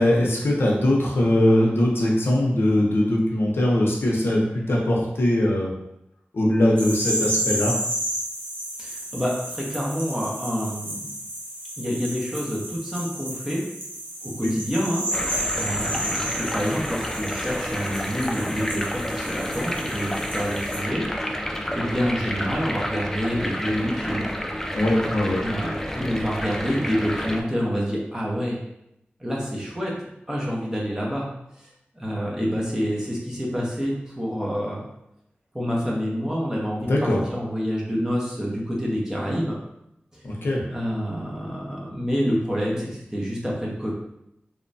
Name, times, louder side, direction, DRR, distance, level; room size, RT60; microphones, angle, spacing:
voice 1, 0.0-5.7 6.3-7.8 14.4-14.5 24.7-25.4 36.8-37.3 40.2-40.7, left 1 dB, 80° left, -2 dB, 0.6 m, -21 dB
sound 1, 6.8-20.8, right 1 dB, 55° right, 0.9 m, -32 dB
voice 2, 8.8-11.1 11.8-13.6 14.2-24.3 25.4-28.6 29.2-31.3 31.6-31.7 32.0-34.8 35.5-36.9 37.3-39.5 40.1-40.2 40.7-43.9, equal, 15° right, -4 dB, 0.8 m, -27 dB
sound 2, 15.1-27.4, equal, 10° left, 0.3 m, -30 dB
2.9 x 2.1 x 2.6 m, 0.82 s
wide cardioid pair, 55°, 4 cm